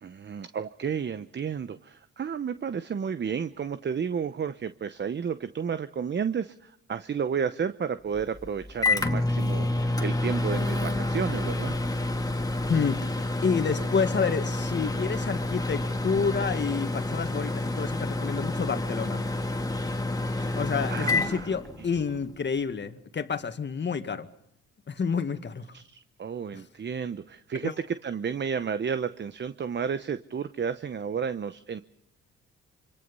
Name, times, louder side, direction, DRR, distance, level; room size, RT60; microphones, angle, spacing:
voice 1, 0.0-11.8 20.2-21.5 25.7-27.7 28.0-31.8, right 7 dB, 35° right, 0.9 m, -32 dB
Microwave oven, 8.1-22.2, left 2 dB, 10° left, 1.8 m, -29 dB
voice 2, 12.7-19.2 20.5-24.3 24.9-25.7 26.5-26.6 27.6-27.7, left 5 dB, 35° left, 2.0 m, -29 dB
26.0 x 25.5 x 5.5 m
cardioid pair, 90°, 30 cm